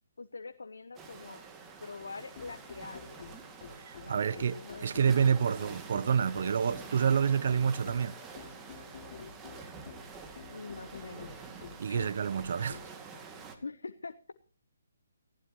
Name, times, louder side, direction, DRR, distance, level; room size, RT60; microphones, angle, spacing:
voice 1, 0.2-1.4 1.8-3.3 4.0-4.9 5.2-5.5 10.5-11.3 11.9-12.1 13.6-14.3, left 4 dB, 75° left, 1.0 m, -44 dB
sound 1, 1.0-13.6, right 5 dB, 15° right, 2.4 m, -48 dB
sound 2, 2.0-12.9, left 6 dB, 40° left, 6.5 m, -50 dB
voice 2, 3.8-8.2 11.8-12.8, right 7 dB, 55° right, 0.6 m, -28 dB
19.0 x 15.5 x 3.1 m
figure-of-eight pair, 145°, 0 cm